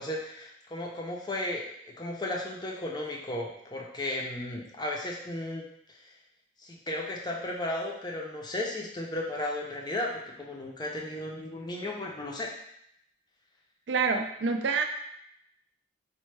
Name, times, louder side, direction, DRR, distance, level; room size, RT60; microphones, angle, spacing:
voice 1, 0.0-6.2 6.6-12.5, left 1 dB, 20° left, -1 dB, 0.5 m, -35 dB
voice 2, 13.9-14.8, right 5 dB, 65° right, 4 dB, 0.4 m, -27 dB
4.3 x 2.1 x 3.2 m, 0.75 s
head